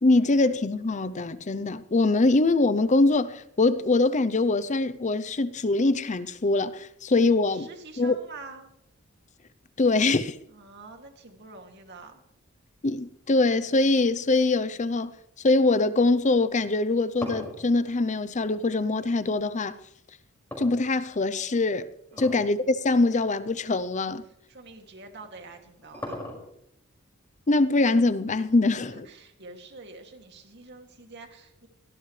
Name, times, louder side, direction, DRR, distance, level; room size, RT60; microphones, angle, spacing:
voice 1, 0.0-7.7 8.0-8.2 9.8-10.4 12.8-15.1 15.4-19.8 20.6-21.9 22.2-24.2 27.5-29.1, left 2 dB, 35° left, 0.6 m, -23 dB
voice 2, 7.5-8.7 10.5-12.2 22.1-22.4 24.5-26.2 28.8-31.7, right 3 dB, 55° right, 2.5 m, -46 dB
sound 1, 17.2-19.1 20.5-21.4 22.1-22.5 22.9-23.0 23.7-23.9 25.2-26.7, left 1 dB, 10° left, 5.7 m, -38 dB
23.0 x 18.5 x 3.3 m
head